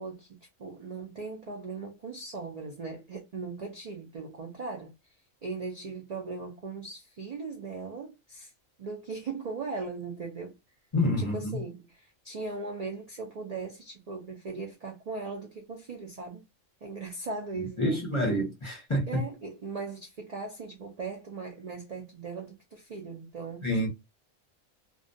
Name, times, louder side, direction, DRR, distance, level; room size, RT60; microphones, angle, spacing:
voice 1, 0.0-4.9 5.4-8.5 8.8-10.6 11.2-16.4 16.8-18.0 19.1-23.9, right 4 dB, 65° right, 0.4 m, -39 dB
voice 2, 10.9-11.5 17.5-19.1 23.6-23.9, left 1 dB, 30° left, 0.7 m, -28 dB
2.3 x 2.1 x 2.6 m
omnidirectional pair, 1.3 m